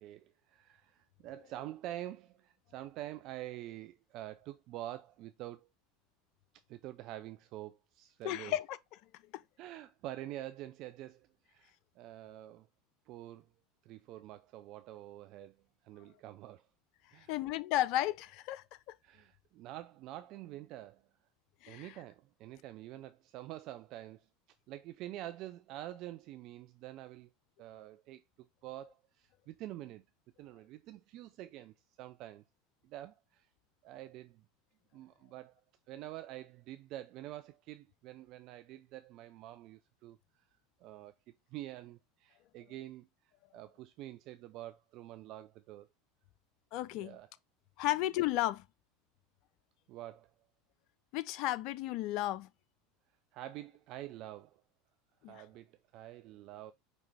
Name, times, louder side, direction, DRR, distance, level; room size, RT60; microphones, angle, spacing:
voice 1, 0.0-5.7 6.7-8.6 9.6-12.7 13.1-13.5 13.8-15.6 15.8-16.6 17.1-17.3 19.0-21.0 21.7-24.3 24.7-27.3 27.6-30.0 30.4-32.4 32.8-33.5 33.8-34.4 34.9-35.6 35.9-40.4 40.8-41.1 41.5-43.1 43.5-45.9 46.9-47.3 49.9-50.3 53.3-54.6 55.3-56.7, right 14 dB, 55° right, 0.3 m, -47 dB
voice 2, 8.2-8.8 17.3-18.6 21.6-21.9 46.7-47.2 47.8-48.6 51.1-52.5 55.2-55.4, left 14 dB, 60° left, 0.4 m, -33 dB
5.2 x 3.1 x 3.3 m
hypercardioid pair, 85°, 0 cm